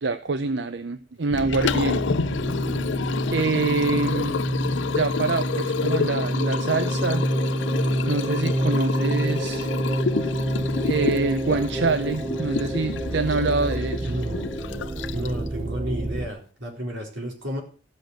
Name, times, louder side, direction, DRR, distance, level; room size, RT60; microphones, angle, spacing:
voice 1, 0.0-2.2 3.3-4.4 4.9-7.2 8.1-9.7 10.8-14.1, right 3 dB, 65° right, 11 dB, 0.6 m, -25 dB
sound 1, 1.3-16.3, right 1 dB, 20° right, 0.5 m, -28 dB
Liquid, 1.4-15.5, left 5 dB, 75° left, 0.5 m, -29 dB
voice 2, 14.0-14.5 15.1-17.6, right 1 dB, 90° right, 2 dB, 4.2 m, -31 dB
16.0 x 6.5 x 6.4 m, 0.40 s
head